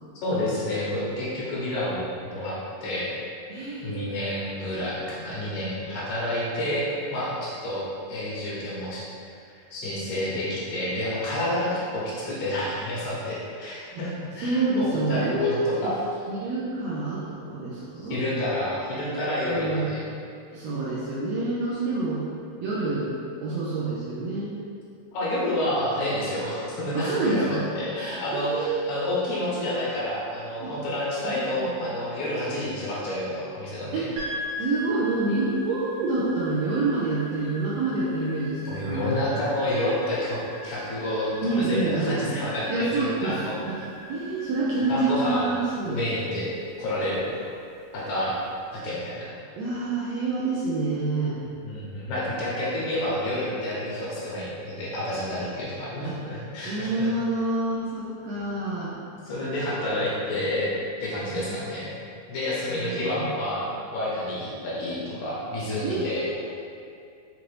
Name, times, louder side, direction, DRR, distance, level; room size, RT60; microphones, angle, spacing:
voice 1, 0.2-3.1 3.8-7.8 8.1-9.0 9.7-16.0 18.0-20.0 25.1-34.1 38.7-43.6 44.9-45.5 45.8-46.5 46.8-47.3 47.9-48.4 48.7-49.3 51.6-57.1 59.2-60.7 61.0-61.9 62.3-66.2, left 1 dB, 80° left, -7 dB, 2.4 m, -29 dB
voice 2, 3.5-4.2 13.9-14.0 14.4-15.9 16.3-18.2 19.4-19.8 20.5-22.2 22.6-24.6 26.9-27.6 28.3-28.9 30.6-30.7 31.2-31.7 33.9-34.1 34.6-39.4 41.4-42.2 42.7-43.4 43.7-43.8 44.1-46.0 49.6-51.4 56.0-56.1 56.7-58.9 61.3-61.5 62.7-63.3 65.8-66.3, right 2 dB, 80° right, -7 dB, 1.6 m, -27 dB
sound 1, 34.2-48.5, equal, 60° right, 1.7 m, -41 dB
5.8 x 2.6 x 3.2 m, 2.4 s
omnidirectional pair, 3.5 m